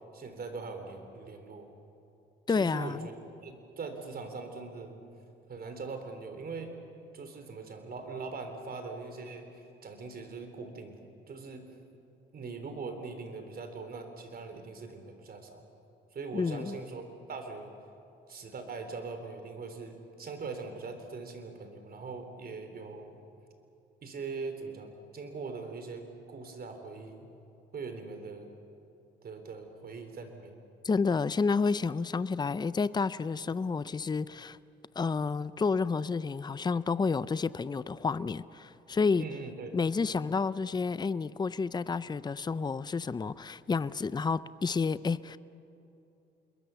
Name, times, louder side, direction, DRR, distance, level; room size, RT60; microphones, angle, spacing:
voice 1, 0.1-1.7 2.5-3.1 3.4-5.0 5.5-6.8 7.1-11.6 12.3-15.6 16.1-17.7 18.3-23.2 24.0-26.0 26.3-27.3 27.7-28.5 29.2-30.6 39.2-39.7, right 4 dB, 50° right, 3.7 m, -41 dB
voice 2, 2.5-3.1 16.3-16.8 30.8-34.6 35.0-39.3 39.7-45.4, left 4 dB, 20° left, 0.5 m, -30 dB
27.5 x 21.5 x 7.0 m
cardioid pair, 90°, 20 cm